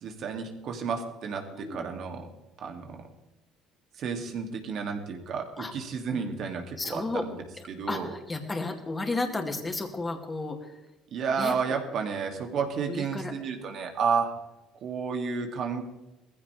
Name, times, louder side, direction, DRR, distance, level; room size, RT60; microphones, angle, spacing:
voice 1, 0.0-2.3 2.6-3.0 4.0-7.4 7.7-8.1 11.1-14.3 14.8-15.8, right 5 dB, 55° right, 3 dB, 2.7 m, -31 dB
voice 2, 1.5-1.9 5.6-5.7 6.8-7.2 7.9-10.8 11.4-11.5 12.9-13.3, left 2 dB, 20° left, 3 dB, 2.7 m, -32 dB
19.5 x 15.5 x 3.5 m, 1.0 s
supercardioid pair, 100°, 0 cm